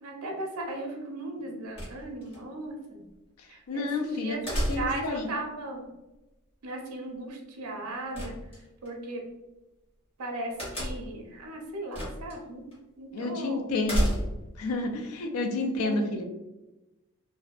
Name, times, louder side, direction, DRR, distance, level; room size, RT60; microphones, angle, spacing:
voice 1, 0.0-3.0 3.5-5.8 6.6-8.3 8.8-9.2 10.2-12.6 13.0-13.7 15.8-16.2, right 2 dB, 85° right, 2 dB, 0.5 m, -37 dB
sound 1, 1.8-2.4 4.5-5.1 8.1-8.9 10.6-11.2 11.9-12.4 12.7-12.8 13.8-14.5, equal, 25° left, 0.9 m, -30 dB
voice 2, 3.7-5.3 13.1-14.0 14.6-16.2, left 2 dB, 85° left, 4 dB, 0.4 m, -30 dB
2.6 x 2.1 x 2.3 m, 1.0 s
head